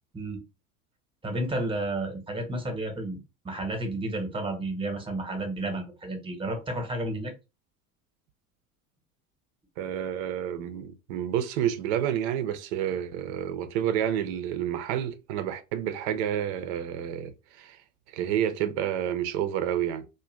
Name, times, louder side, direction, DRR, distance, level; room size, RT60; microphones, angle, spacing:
voice 1, 1.2-3.2 3.4-7.3, right 1 dB, 10° right, 0.9 m, -31 dB
voice 2, 9.8-17.8 18.1-20.1, right 10 dB, 50° right, 0.6 m, -29 dB
2.5 x 2.2 x 3.1 m
hypercardioid pair, 85°, 45 cm